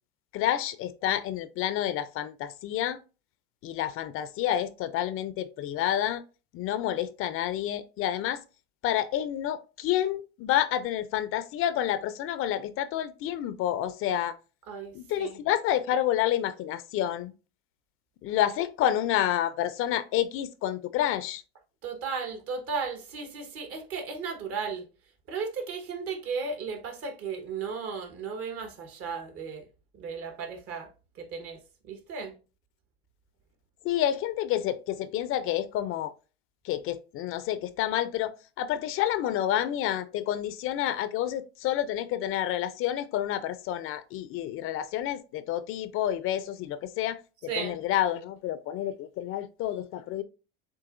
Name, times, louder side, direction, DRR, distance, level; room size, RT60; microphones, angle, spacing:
voice 1, 0.3-3.0 3.6-6.2 6.5-8.4 8.8-14.3 14.9-17.3 18.2-21.4 33.8-36.1 36.6-38.3 38.6-47.2 47.6-50.2, left 11 dB, 45° left, 0.5 m, -29 dB
voice 2, 14.7-15.4 21.8-24.9 25.3-29.7 29.9-30.9 31.1-32.3 47.5-47.8, right 5 dB, 50° right, 1.3 m, -35 dB
7.6 x 2.6 x 2.5 m
supercardioid pair, 105°, 31 cm